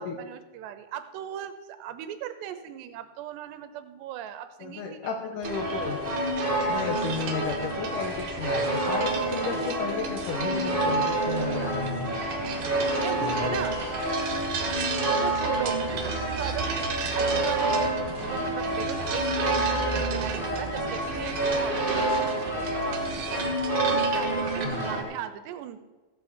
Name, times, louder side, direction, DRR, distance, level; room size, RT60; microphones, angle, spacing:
voice 1, 0.0-5.0 12.3-13.8 14.9-16.8 17.2-23.4 23.9-25.8, right 11 dB, 85° right, 10 dB, 3.1 m, -38 dB
voice 2, 4.6-6.0 6.7-12.1 13.2-13.6 24.6-24.9, left 6 dB, 70° left, 4 dB, 2.2 m, -33 dB
sound 1, 5.4-25.0, right 1 dB, 20° right, 1.5 m, -28 dB
sound 2, 5.4-24.6, right 5 dB, 70° right, 3.0 m, -36 dB
14.5 x 7.9 x 6.4 m, 1.2 s
omnidirectional pair, 4.8 m